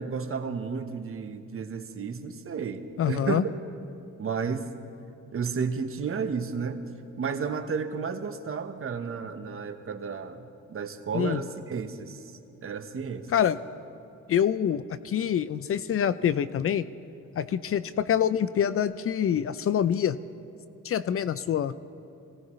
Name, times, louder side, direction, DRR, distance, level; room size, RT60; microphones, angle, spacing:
voice 1, 0.0-3.4 4.2-4.7 5.3-6.8 7.2-12.2 12.6-13.3, right 5 dB, 45° right, 7 dB, 1.2 m, -32 dB
voice 2, 3.0-3.4 11.1-11.4 13.3-13.6 14.3-16.9 17.4-20.2 20.8-21.7, left 9 dB, 50° left, 15 dB, 0.5 m, -26 dB
24.0 x 17.5 x 3.2 m, 2.7 s
cardioid pair, 90°, 30 cm